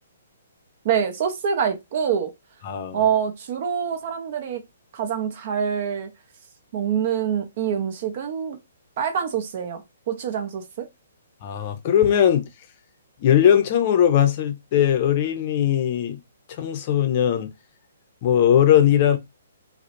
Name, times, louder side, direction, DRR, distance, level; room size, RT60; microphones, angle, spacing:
voice 1, 0.8-2.3 2.9-4.6 4.9-6.1 6.7-8.6 9.0-9.8 10.1-10.9, right 8 dB, 50° right, 0.6 m, -25 dB
voice 2, 2.6-3.0 11.4-12.4 13.2-16.2 16.6-17.5 18.2-19.2, left 10 dB, 40° left, 0.5 m, -19 dB
2.4 x 2.0 x 2.8 m
hypercardioid pair, 135°, 0 cm